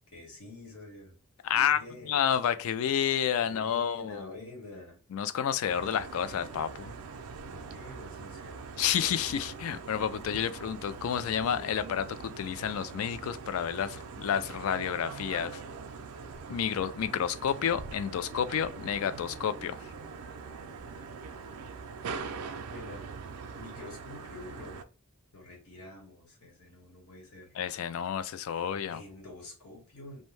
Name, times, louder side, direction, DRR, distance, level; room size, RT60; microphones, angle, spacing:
voice 1, 0.1-1.1 1.5-2.3 3.4-5.0 7.4-8.6 22.7-23.1 23.5-24.8 25.3-27.6 28.5-30.2, left 2 dB, 85° left, 1.1 m, -47 dB
voice 2, 1.4-1.8 2.1-4.2 5.1-6.9 8.8-15.6 16.5-19.8 27.6-29.0, left 8 dB, 70° left, 0.3 m, -30 dB
sound 1, 5.7-24.8, right 5 dB, 80° right, 0.4 m, -43 dB
2.6 x 2.1 x 3.1 m
head